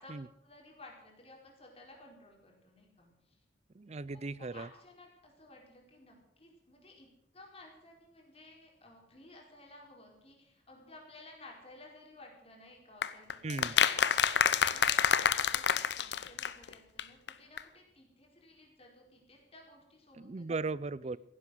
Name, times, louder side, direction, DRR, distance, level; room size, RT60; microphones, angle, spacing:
voice 1, 0.0-3.4 4.1-7.1 7.3-20.5, left 2 dB, 35° left, 0 dB, 4.7 m, -55 dB
voice 2, 3.7-4.7 13.4-13.7 20.1-21.2, right 3 dB, 35° right, 20 dB, 0.5 m, -37 dB
sound 1, 13.0-16.7 17.0-17.1 17.3-17.4 17.6-17.7, left 7 dB, 70° left, 0.8 m, -28 dB
16.0 x 11.0 x 7.7 m, 0.78 s
head